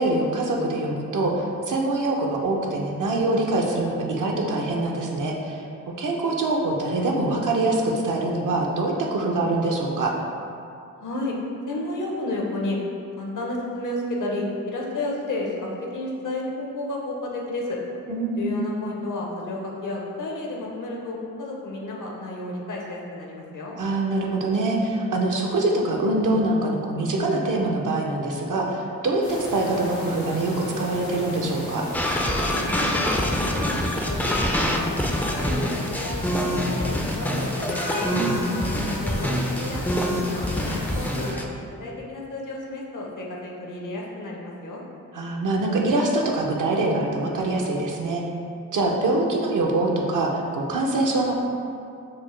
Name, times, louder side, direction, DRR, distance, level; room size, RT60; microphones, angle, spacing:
voice 1, 0.0-5.6 6.0-10.1 18.1-18.6 23.8-31.8 38.1-38.7 45.1-48.2 48.7-51.3, right 2 dB, 65° right, 0 dB, 0.6 m, -24 dB
voice 2, 11.0-11.3 11.7-12.8 13.2-17.8 18.4-23.8 32.6-34.4 34.7-34.9 35.3-38.1 38.8-41.4 41.8-44.8, left 2 dB, 65° left, -2 dB, 0.7 m, -32 dB
sound 1, 29.2-41.3, left 1 dB, 85° left, 1.0 m, -35 dB
sound 2, 31.9-41.4, left 1 dB, 5° left, 0.3 m, -25 dB
4.0 x 2.0 x 3.1 m, 2.5 s
cardioid pair, 45°, 34 cm